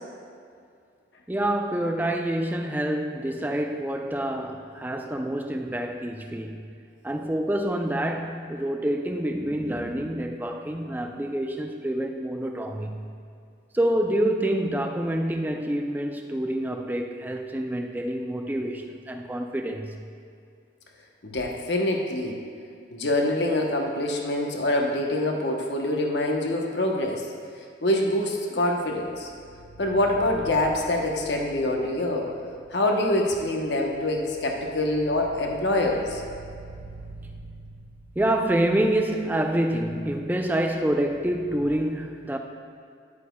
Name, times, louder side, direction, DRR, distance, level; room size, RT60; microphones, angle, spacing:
voice 1, 1.3-6.6 7.0-13.1 13.7-20.0 38.2-42.4, right 1 dB, 10° right, 4 dB, 0.4 m, -27 dB
voice 2, 21.2-22.4 22.9-27.2 27.8-29.3 29.8-32.3 32.7-36.2, left 1 dB, 65° left, 1 dB, 0.9 m, -25 dB
sound 1, 28.8-41.7, right 2 dB, 30° left, 0.8 m, -47 dB
10.0 x 8.4 x 2.3 m, 2.3 s
head